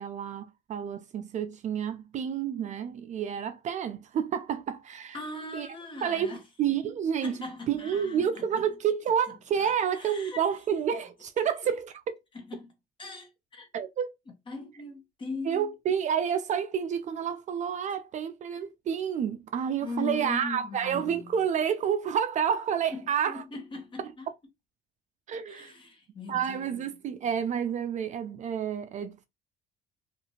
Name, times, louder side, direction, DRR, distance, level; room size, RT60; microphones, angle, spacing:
voice 1, 0.0-5.2 5.5-5.7 6.0-7.4 7.7-12.2 13.7-14.1 15.5-23.4 25.3-25.7 26.3-29.3, right 8 dB, 45° right, 0.4 m, -29 dB
voice 2, 5.1-6.4 7.2-8.6 9.6-10.5 11.4-11.7 12.3-12.7 13.0-13.7 14.5-15.7 19.8-21.3 22.9-24.3 25.5-26.9, left 3 dB, 30° left, 1.1 m, -40 dB
2.7 x 2.4 x 2.8 m
cardioid pair, 110°, 17 cm